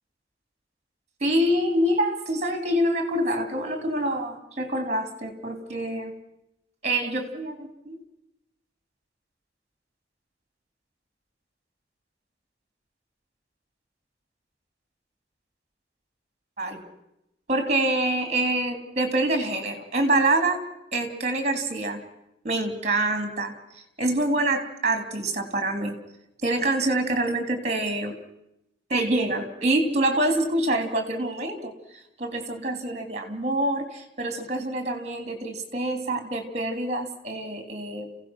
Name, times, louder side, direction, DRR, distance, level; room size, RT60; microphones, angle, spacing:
voice 1, 1.2-6.1 6.8-7.9 16.6-16.8 17.5-20.6 20.9-22.0 22.4-26.0 26.4-28.2 28.9-38.1, right 1 dB, 35° right, 7 dB, 3.1 m, -26 dB
29.5 x 16.5 x 6.1 m, 0.84 s
head